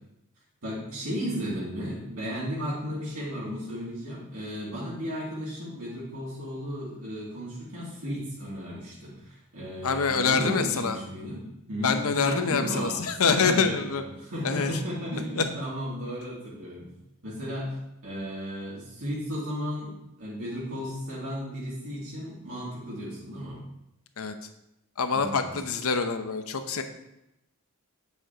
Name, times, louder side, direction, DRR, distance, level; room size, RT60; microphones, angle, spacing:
voice 1, 0.6-11.4 11.7-16.9 17.2-17.8 18.0-23.6 25.1-25.5, equal, 70° right, -8 dB, 2.6 m, -34 dB
voice 2, 9.8-11.0 11.8-14.0 14.4-14.8 15.4-15.5 24.2-24.3 25.0-26.8, left 5 dB, 70° left, 8 dB, 0.8 m, -25 dB
9.0 x 7.1 x 2.9 m, 0.85 s
head